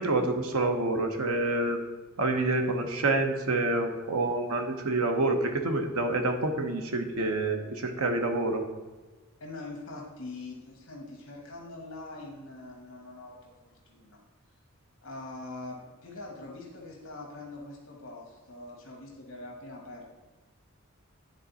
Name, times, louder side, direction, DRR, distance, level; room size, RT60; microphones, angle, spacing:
voice 1, 0.0-1.8 2.2-8.6, right 2 dB, 80° right, 5 dB, 0.9 m, -27 dB
voice 2, 9.4-13.5 13.9-14.2 15.0-20.1, left 2 dB, 60° left, -2 dB, 1.4 m, -43 dB
9.9 x 3.9 x 4.0 m, 1.3 s
head